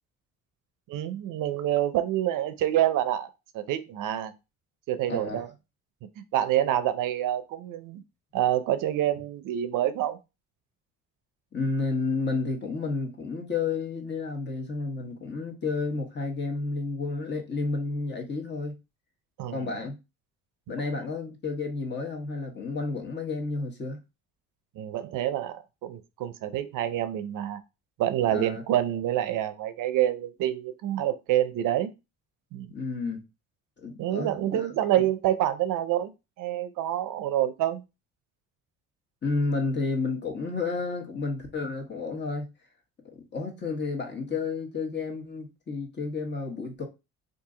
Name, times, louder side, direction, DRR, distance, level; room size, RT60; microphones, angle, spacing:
voice 1, 0.9-3.3 3.5-4.3 4.9-5.5 6.3-8.0 8.3-10.2 19.4-19.7 24.8-27.6 28.0-31.9 32.5-32.7 34.0-36.1 36.4-37.8, right 12 dB, 70° right, 0.6 m, -27 dB
voice 2, 5.0-5.5 11.5-18.8 19.5-20.0 20.7-24.0 28.3-28.6 32.7-33.2 33.8-34.7 39.2-42.5 43.1-46.8, left 3 dB, 35° left, 1.2 m, -31 dB
2.8 x 2.7 x 3.7 m
cardioid pair, 100°, 33 cm